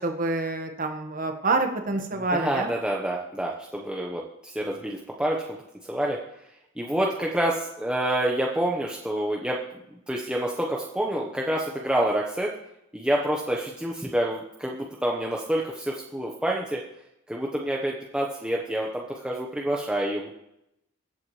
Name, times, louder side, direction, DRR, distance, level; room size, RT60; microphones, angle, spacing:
voice 1, 0.0-2.7, right 2 dB, 40° right, 5 dB, 1.5 m, -27 dB
voice 2, 2.1-5.6 5.9-6.2 6.8-9.6 9.9-12.6 12.9-16.8 17.3-20.3, right 1 dB, 5° right, -2 dB, 1.1 m, -28 dB
23.0 x 8.3 x 3.3 m, 0.83 s
head